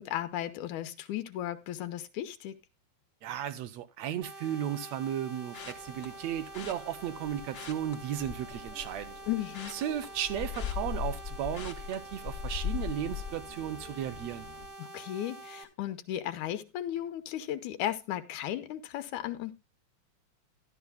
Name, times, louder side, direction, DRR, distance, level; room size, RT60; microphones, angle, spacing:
voice 1, 0.0-2.6 9.3-9.8 14.8-19.5, left 12 dB, 80° left, 2.3 m, -35 dB
voice 2, 3.2-9.2 9.7-14.5, right 10 dB, 70° right, 1.9 m, -35 dB
sound 1, 4.2-15.6, right 2 dB, 15° right, 2.0 m, -47 dB
sound 2, 5.5-6.1 6.5-6.7 7.4-8.7 9.0-11.2 11.5-11.9 12.4-12.7 13.0-13.1, left 7 dB, 55° left, 1.5 m, -47 dB
sound 3, 5.7-14.7, left 8 dB, 30° left, 1.2 m, -41 dB
12.5 x 12.5 x 2.2 m
omnidirectional pair, 3.4 m